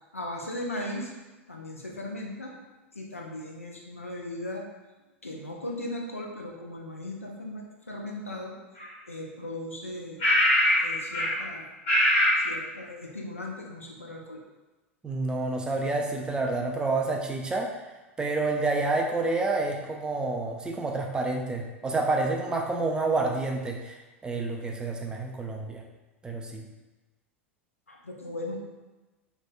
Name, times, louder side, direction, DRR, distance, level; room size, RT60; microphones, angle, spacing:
voice 1, 0.1-1.1 1.5-2.5 2.9-4.6 5.2-8.6 9.1-10.2 10.8-11.7 12.4-14.4 27.9-28.6, left 1 dB, 85° left, -1 dB, 0.4 m, -37 dB
sound 1, 8.8-8.9 10.2-10.8 11.1-11.4 11.9-12.4, equal, 65° left, 1.2 m, -22 dB
voice 2, 15.0-17.7 18.2-25.8 26.2-26.6, right 3 dB, 10° right, 1 dB, 0.3 m, -29 dB
3.1 x 2.1 x 2.2 m, 1.2 s
figure-of-eight pair, 85°, 7 cm